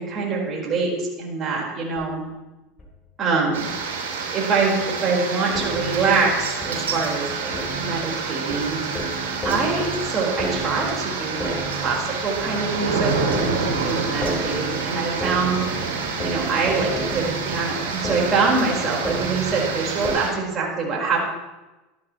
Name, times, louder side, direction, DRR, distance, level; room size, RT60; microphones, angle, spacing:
voice 1, 0.0-2.2 3.2-3.7 4.3-8.8 9.4-15.7 16.2-21.3, right 4 dB, 35° right, -2 dB, 4.3 m, -24 dB
sound 1, 2.0-2.1 2.8-2.9 3.7-3.8 4.6-4.7 5.5-20.1, right 1 dB, 25° left, 4.2 m, -33 dB
sound 2, 3.5-20.3, right 5 dB, 90° right, 2.7 m, -28 dB
12.5 x 12.0 x 3.0 m, 1.1 s
hypercardioid pair, 100°, 0 cm